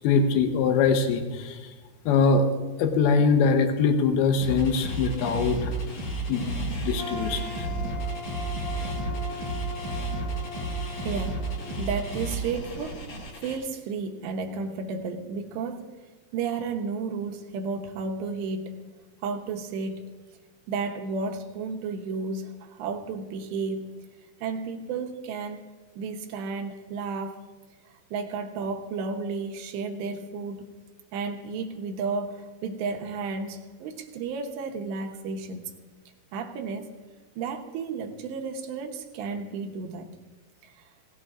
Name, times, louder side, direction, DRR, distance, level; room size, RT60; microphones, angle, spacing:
voice 1, 0.0-1.7 2.1-2.5 2.8-5.7 6.3-7.7, left 5 dB, 80° left, 6 dB, 2.3 m, -23 dB
sound 1, 4.4-13.6, right 2 dB, 45° left, 3.2 m, -32 dB
sound 2, 7.0-12.9, left 3 dB, 25° left, 2.0 m, -40 dB
voice 2, 11.0-13.0 13.4-15.9 16.3-18.9 19.2-20.2 20.7-24.0 24.4-25.6 26.0-27.4 28.1-30.7 31.1-35.8 36.3-36.9 37.4-40.1 40.6-40.7, right 4 dB, 75° right, 2 dB, 2.7 m, -32 dB
18.0 x 15.5 x 2.5 m, 1.3 s
omnidirectional pair, 5.7 m